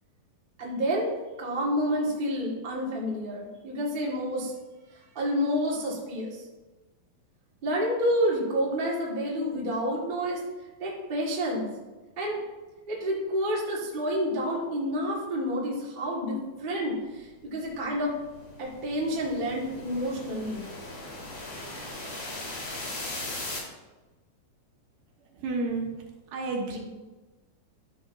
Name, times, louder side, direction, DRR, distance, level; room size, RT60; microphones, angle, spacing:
voice 1, 0.6-1.1 1.4-4.5 5.1-6.4 7.6-10.4 10.8-11.7 12.2-12.4 12.9-18.1 18.6-20.6, equal, 35° right, -4 dB, 0.8 m, -29 dB
sound 1, 17.6-23.6, left 2 dB, 45° left, 4.0 m, -39 dB
voice 2, 25.4-25.9 26.3-26.8, right 3 dB, 75° right, 0 dB, 2.6 m, -30 dB
11.0 x 6.4 x 2.7 m, 1.2 s
omnidirectional pair, 4.2 m